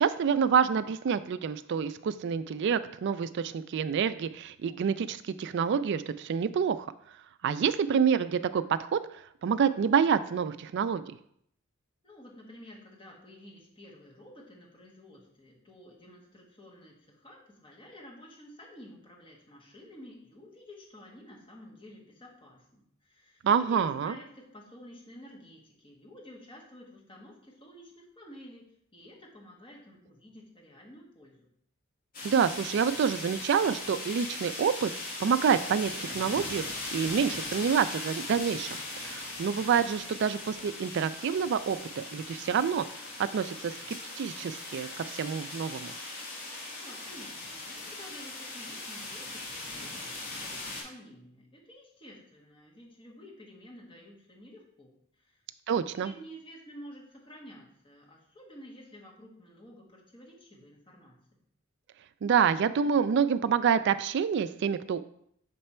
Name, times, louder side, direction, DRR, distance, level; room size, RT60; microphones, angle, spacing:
voice 1, 0.0-6.9 7.4-9.0 9.4-11.2 23.4-24.1 32.2-34.9 35.2-36.6 36.9-42.8 43.2-45.9 55.7-56.1 62.2-65.0, right 7 dB, 60° right, 14 dB, 0.3 m, -27 dB
voice 2, 12.0-28.7 28.9-31.5 46.8-54.9 55.2-55.4 55.9-61.4, equal, 25° left, -3 dB, 1.5 m, -51 dB
sound 1, 32.1-50.8, left 2 dB, 45° left, 2.2 m, -39 dB
6.7 x 3.3 x 4.3 m, 0.70 s
head